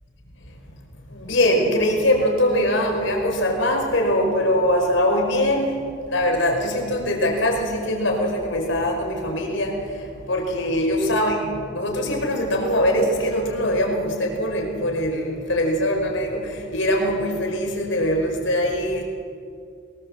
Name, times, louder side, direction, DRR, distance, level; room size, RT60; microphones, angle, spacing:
voice 1, 1.1-11.4 11.7-19.0, equal, 70° left, 1 dB, 4.9 m, -22 dB
22.5 x 20.0 x 7.5 m, 2.3 s
head